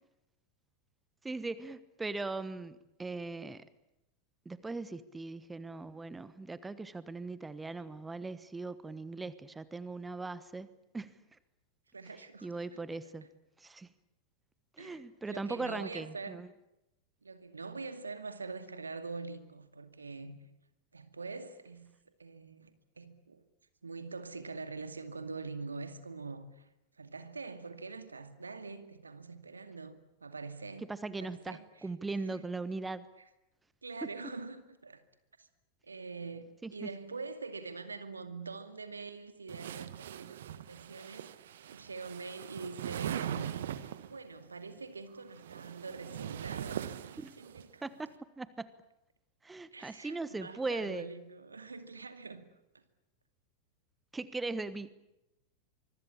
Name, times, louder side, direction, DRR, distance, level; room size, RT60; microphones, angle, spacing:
voice 1, 1.2-3.6 4.4-10.7 10.9-11.4 12.4-13.3 13.6-13.9 14.8-16.5 30.9-33.1 34.0-34.1 36.6-36.9 47.2-47.3 47.8-48.7 49.4-51.1 54.1-54.9, right 3 dB, 10° right, 1.2 m, -39 dB
voice 2, 11.9-13.0 14.8-16.5 17.2-20.4 20.9-21.9 22.2-23.4 23.8-26.7 27.0-30.9 31.2-31.9 32.2-32.4 33.8-35.0 35.4-35.5 35.8-43.7 44.1-47.8 49.7-52.5, right 4 dB, 75° right, 2.3 m, -44 dB
sound 1, 39.5-44.2 45.2-47.6, right 10 dB, 60° right, 1.4 m, -41 dB
25.0 x 23.5 x 8.6 m
figure-of-eight pair, 90°, 0 cm